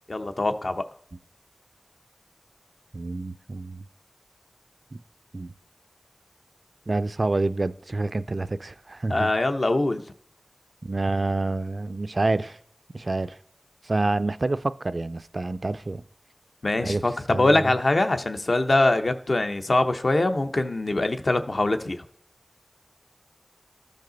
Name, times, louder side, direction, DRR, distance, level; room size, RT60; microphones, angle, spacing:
voice 1, 0.1-0.8 9.1-10.0 16.6-22.0, left 2 dB, 65° left, 0.6 m, -23 dB
voice 2, 2.9-3.8 4.9-5.0 5.3-5.5 6.9-9.3 10.8-12.6 12.9-13.4 13.8-16.0 16.8-17.0 17.3-17.7, right 2 dB, 60° right, 0.3 m, -27 dB
13.5 x 5.3 x 3.9 m
wide cardioid pair, 45°, 0 cm